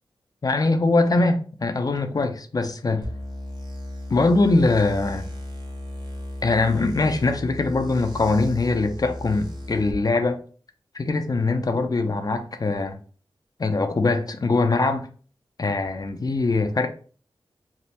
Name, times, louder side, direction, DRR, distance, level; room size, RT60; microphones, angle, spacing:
voice 1, 0.4-3.1 4.1-5.3 6.4-10.4 10.9-13.0 13.6-15.1 15.6-16.9, left 3 dB, 40° left, 0.4 m, -22 dB
sound 1, 3.0-9.9, left 1 dB, 50° right, 0.9 m, -35 dB
3.2 x 2.0 x 2.8 m
cardioid pair, 50°, 9 cm